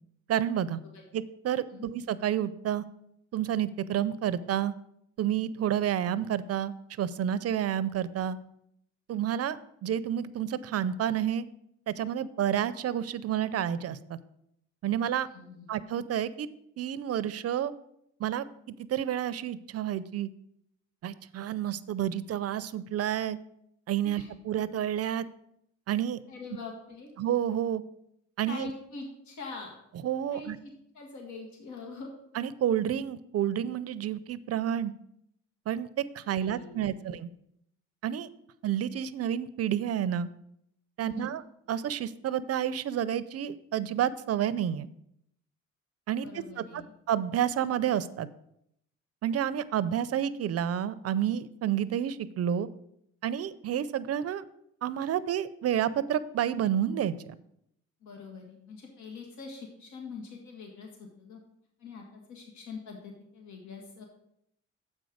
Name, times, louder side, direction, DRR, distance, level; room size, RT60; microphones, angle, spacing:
voice 1, 0.3-0.8 1.1-2.8 3.3-4.7 5.2-8.4 9.1-11.5 11.9-14.2 14.8-15.3 15.7-16.5 16.8-17.7 18.2-18.4 18.8-20.3 21.0-23.4 23.9-25.3 25.9-26.2 27.2-27.8 28.4-28.7 30.0-30.6 32.3-34.9 35.7-35.9 36.1-37.3 38.0-38.3 38.6-40.3 41.0-41.4 41.7-44.9 46.1-46.8 47.1-48.3 49.2-52.7 53.2-54.4 54.8-57.4, right 10 dB, 55° right, 16 dB, 0.5 m, -30 dB
voice 2, 15.3-15.7 24.0-24.3 26.3-27.1 28.5-29.8 30.3-32.1 36.2-36.9 41.0-41.3 46.2-46.9 58.0-61.4 61.8-64.0, left 4 dB, 70° left, 1 dB, 1.6 m, -44 dB
7.4 x 5.3 x 6.3 m, 0.76 s
cardioid pair, 90°, 30 cm